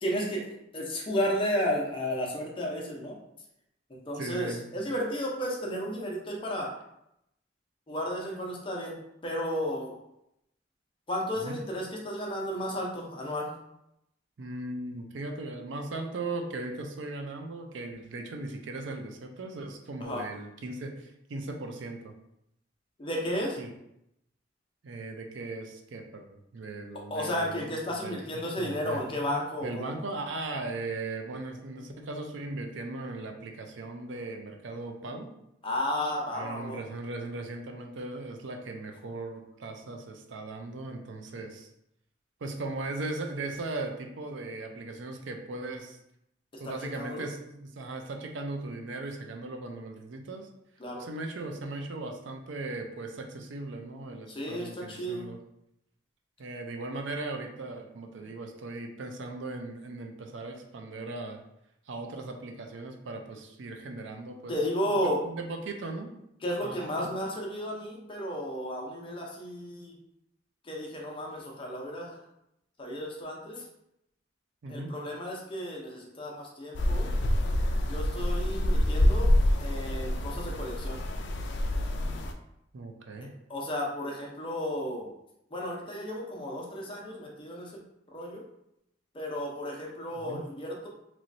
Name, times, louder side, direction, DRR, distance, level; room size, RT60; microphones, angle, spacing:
voice 1, 0.0-3.1 3.9-6.7 7.9-10.0 11.1-13.5 20.0-20.2 23.0-23.6 27.1-29.9 35.6-36.8 47.0-47.2 50.8-51.0 54.3-55.3 64.5-65.2 66.4-69.9 70.6-72.2 72.8-73.6 74.7-77.1 77.9-79.3 79.6-81.0 83.5-85.1 85.5-87.7 88.1-88.4 89.1-90.9, equal, 30° left, -2 dB, 0.7 m, -33 dB
voice 2, 4.1-4.7 11.4-11.6 14.4-22.1 23.6-23.7 24.8-28.2 28.6-29.0 29.6-35.3 36.3-41.7 42.4-46.0 46.6-50.5 51.0-55.4 56.4-61.4 61.9-64.5 64.9-65.0 65.2-66.1 66.6-67.1 74.6-74.9 82.7-83.3 90.2-90.4, right 2 dB, 85° right, 4 dB, 0.5 m, -38 dB
sound 1, 76.7-82.3, left 1 dB, 70° left, 0.4 m, -26 dB
3.0 x 3.0 x 2.6 m, 0.81 s
head